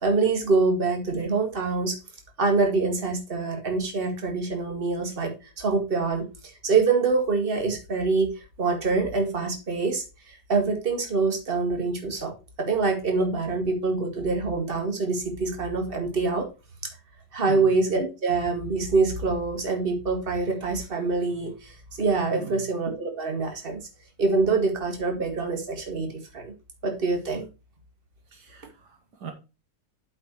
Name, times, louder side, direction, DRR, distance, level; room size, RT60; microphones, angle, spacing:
voice 1, 0.0-2.0 2.4-8.3 8.6-12.3 12.6-16.5 17.3-23.8 24.2-26.5 26.8-27.5, right 4 dB, 30° right, 2.1 m, -25 dB
voice 2, 22.4-22.7 28.3-29.3, right 7 dB, 70° right, 1.9 m, -40 dB
8.1 x 5.6 x 4.6 m
omnidirectional pair, 1.9 m